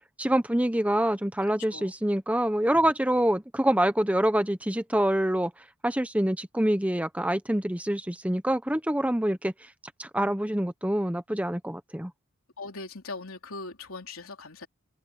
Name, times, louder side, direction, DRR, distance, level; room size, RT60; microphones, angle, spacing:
voice 1, 0.2-5.5 5.8-9.5 10.0-12.1, right 1 dB, 5° right, 0.9 m, -26 dB
voice 2, 12.6-14.7, left 3 dB, 75° left, 3.4 m, -40 dB
open air
head